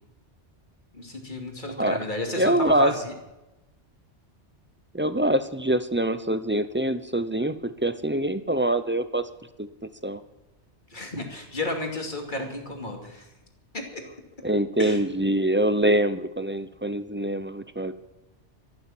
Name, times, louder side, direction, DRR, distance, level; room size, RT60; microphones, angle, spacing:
voice 1, 0.9-3.1 10.9-13.3 13.7-14.0 14.8-15.0, left 1 dB, 45° left, 2 dB, 2.8 m, -32 dB
voice 2, 2.4-2.9 4.9-9.3 9.6-9.7 10.0-10.2 14.4-17.9, right 1 dB, 15° right, 12 dB, 0.5 m, -24 dB
13.5 x 12.0 x 7.3 m, 1.0 s
omnidirectional pair, 1.2 m